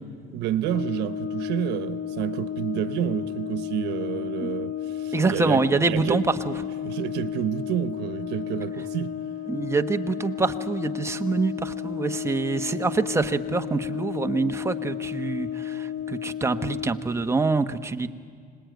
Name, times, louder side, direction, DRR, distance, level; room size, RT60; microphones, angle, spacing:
voice 1, 0.3-6.2 6.8-9.1, right 11 dB, 85° right, 1.0 m, -29 dB
Brass instrument, 0.6-17.0, left 10 dB, 50° left, 1.0 m, -33 dB
voice 2, 5.1-6.5 9.5-18.1, right 3 dB, 15° right, 1.1 m, -25 dB
25.5 x 20.0 x 9.3 m
cardioid pair, 110°, 17 cm